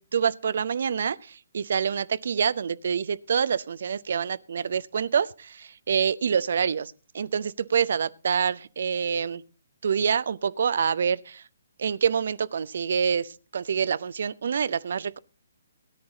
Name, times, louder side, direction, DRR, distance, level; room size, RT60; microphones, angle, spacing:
voice 1, 0.0-9.4 9.8-11.4 11.8-15.2, right 7 dB, 55° right, 0.6 m, -26 dB
17.5 x 10.5 x 3.9 m
figure-of-eight pair, 130°, 0 cm